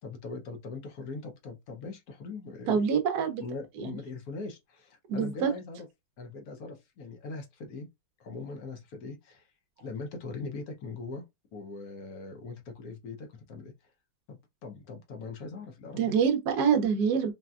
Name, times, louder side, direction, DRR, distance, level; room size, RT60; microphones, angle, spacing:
voice 1, 0.0-2.8 3.4-5.9 6.2-7.9 8.2-9.5 9.8-11.2 11.5-13.7 14.3-16.1, left 3 dB, 60° left, 1.1 m, -41 dB
voice 2, 2.7-3.4 3.8-4.0 5.1-5.5 15.9-17.3, right 6 dB, 65° right, 1.0 m, -26 dB
4.1 x 2.2 x 2.3 m
omnidirectional pair, 2.1 m